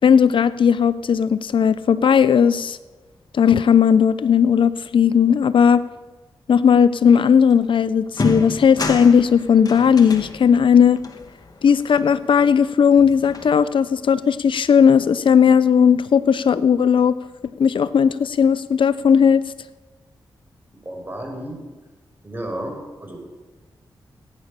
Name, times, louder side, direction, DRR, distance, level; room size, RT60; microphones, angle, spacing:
voice 1, 0.0-2.8 3.3-5.8 6.5-11.0 11.6-17.2 17.6-19.4, left 7 dB, 70° left, 15 dB, 0.5 m, -16 dB
sound 1, 7.5-7.6 8.1-12.6 13.0-14.0, left 2 dB, 45° left, 1.8 m, -31 dB
voice 2, 20.8-21.6 22.2-23.2, right 1 dB, 20° right, 2 dB, 5.9 m, -32 dB
19.0 x 10.0 x 6.7 m, 1.3 s
cardioid pair, 45°, 9 cm